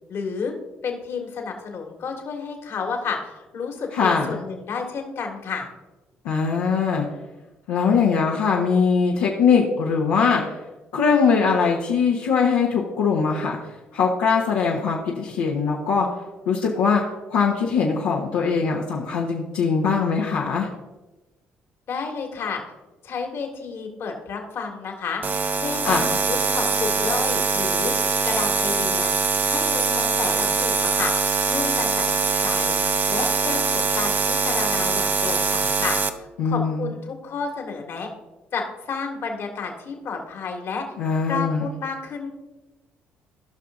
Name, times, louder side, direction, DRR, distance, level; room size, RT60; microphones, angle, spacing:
voice 1, 0.1-0.5 0.8-5.7 21.9-22.6 23.0-25.2 25.6-25.9 26.3-27.9 28.2-29.1 29.5-31.1 31.5-32.8 33.1-38.1 38.5-40.9 41.3-42.3, left 5 dB, 60° left, 2 dB, 1.8 m, -31 dB
voice 2, 3.9-4.4 6.2-7.1 7.7-10.4 10.9-13.6 13.9-16.1 16.5-17.0 17.3-20.7 25.8-26.1 36.4-36.9 41.0-41.7, left 5 dB, 85° left, -4 dB, 1.1 m, -21 dB
sound 1, 25.2-36.1, right 4 dB, 40° right, 0.7 m, -23 dB
16.5 x 5.8 x 2.6 m, 1.1 s
supercardioid pair, 65°, 5 cm